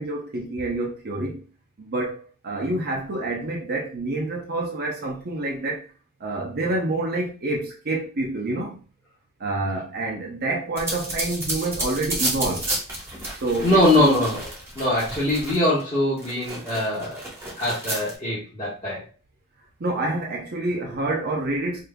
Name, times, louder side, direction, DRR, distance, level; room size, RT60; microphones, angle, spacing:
voice 1, 0.0-1.4 1.8-5.9 6.2-8.8 9.4-12.7 13.4-14.1 19.8-21.8, right 2 dB, 45° right, 0.7 m, -27 dB
sound 1, 10.8-15.8 16.2-18.1, right 1 dB, 10° right, 1.2 m, -31 dB
voice 2, 13.6-14.5 14.7-17.2 17.6-19.0, left 1 dB, 25° left, 1.6 m, -22 dB
5.0 x 2.7 x 2.3 m
head